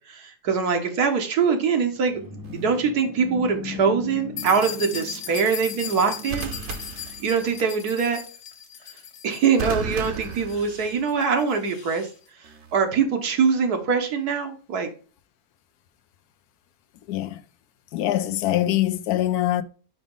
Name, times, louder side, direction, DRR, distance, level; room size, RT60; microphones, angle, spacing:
voice 1, 0.1-2.2 2.5-6.5 7.2-8.2 9.2-12.1 12.4-14.9, right 6 dB, 80° right, 1.6 m, -23 dB
sound 1, 1.7-7.3, left 3 dB, 20° right, 0.8 m, -39 dB
sound 2, 2.4-2.8 6.3-7.8 9.6-11.2 12.4-12.8, right 5 dB, 65° right, 1.2 m, -34 dB
sound 3, 4.4-12.1, left 8 dB, 55° left, 1.2 m, -38 dB
voice 2, 17.1-17.4 17.9-19.6, left 13 dB, 80° left, 1.1 m, -23 dB
5.1 x 5.0 x 3.7 m
omnidirectional pair, 1.6 m